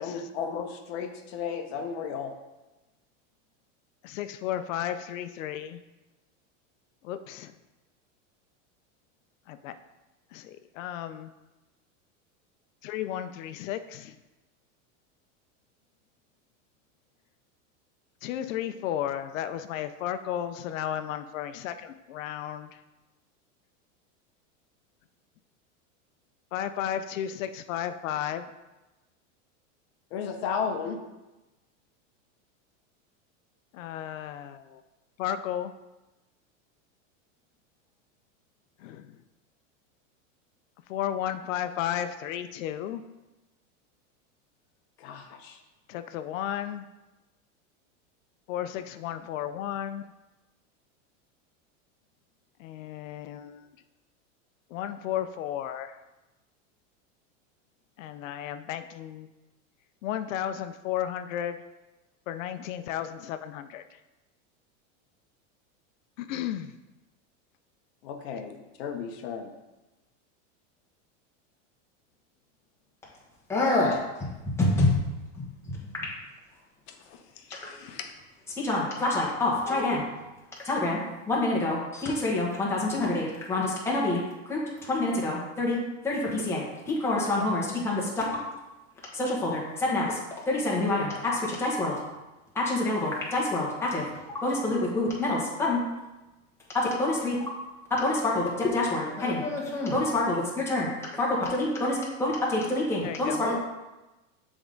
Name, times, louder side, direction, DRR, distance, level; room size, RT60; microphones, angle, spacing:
voice 1, 0.0-2.3 30.1-31.0 45.0-45.6 68.0-69.5 76.9-78.1, left 6 dB, 55° left, 5 dB, 0.8 m, -34 dB
voice 2, 4.0-5.8 7.0-7.5 9.5-9.8 10.3-11.3 12.8-14.2 18.2-22.7 26.5-28.5 33.7-34.8 35.2-35.7 38.8-39.0 40.9-43.0 45.9-46.9 48.5-50.1 52.6-53.7 54.7-56.0 58.0-59.3 60.0-61.6 62.3-63.8 66.2-66.7 103.0-103.4, left 10 dB, 90° left, 10 dB, 0.5 m, -33 dB
voice 3, 73.5-74.3 74.6-75.0 75.4-75.8 78.6-80.1 80.6-81.0 81.3-85.8 86.0-88.3 89.1-90.2 90.5-91.9 92.5-94.0 94.3-95.8 97.0-97.3 98.0-103.5, left 2 dB, 5° left, -5 dB, 1.1 m, -27 dB
7.0 x 3.6 x 3.8 m, 1.1 s
supercardioid pair, 155°, 38 cm